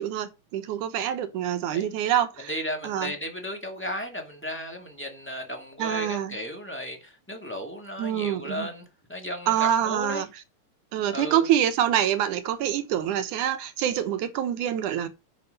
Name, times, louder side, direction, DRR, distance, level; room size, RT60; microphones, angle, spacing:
voice 1, 0.0-2.5 2.8-3.1 5.8-6.4 8.0-8.7 9.5-10.3 10.9-15.1, right 10 dB, 75° right, 2.5 m, -26 dB
voice 2, 2.4-10.2 11.1-11.5, equal, 5° left, 1.6 m, -35 dB
10.0 x 5.7 x 5.3 m
omnidirectional pair, 3.7 m